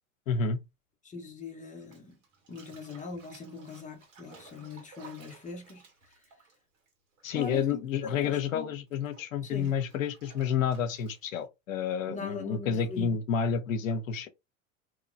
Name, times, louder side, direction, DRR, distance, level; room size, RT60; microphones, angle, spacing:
voice 1, 0.3-0.6 7.2-14.3, left 7 dB, 75° left, 0.8 m, -30 dB
voice 2, 1.0-2.2 2.5-5.8 7.3-7.9 8.1-8.7 9.4-9.7 12.1-13.1, left 3 dB, 20° left, 1.0 m, -41 dB
Bathtub (filling or washing), 1.8-7.6 7.9-11.5, right 4 dB, 65° right, 1.9 m, -56 dB
2.9 x 2.9 x 2.6 m
figure-of-eight pair, 80°, 40 cm